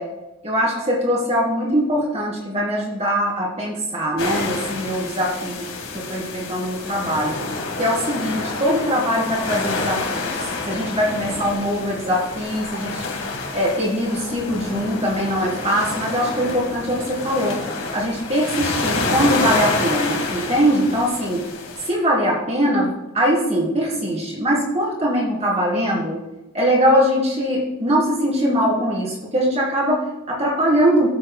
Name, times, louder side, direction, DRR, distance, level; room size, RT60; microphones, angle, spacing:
voice 1, 0.4-5.7 5.9-7.3 7.8-10.3 10.7-13.0 13.5-17.6 17.9-21.4 21.9-26.2 26.5-31.1, equal, 30° right, -4 dB, 3.3 m, -21 dB
sound 1, 4.2-21.9, left 3 dB, 70° left, 1.9 m, -28 dB
15.5 x 7.9 x 2.2 m, 1.0 s
head